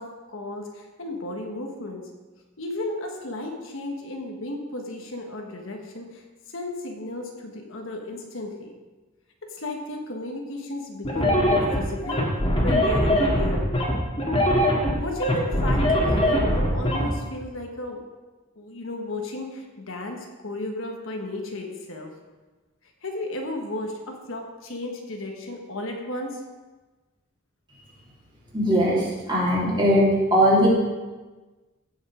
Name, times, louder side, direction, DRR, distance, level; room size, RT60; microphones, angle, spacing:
voice 1, 0.0-2.1 2.6-8.8 9.5-12.3 12.6-13.7 14.9-18.0 18.6-22.1 23.0-26.4, left 1 dB, 65° left, 2 dB, 1.3 m, -34 dB
sound 1, 11.1-17.1, equal, 25° left, 1.9 m, -22 dB
voice 2, 28.5-30.7, equal, 20° right, -6 dB, 3.0 m, -20 dB
16.0 x 5.5 x 5.0 m, 1.2 s
head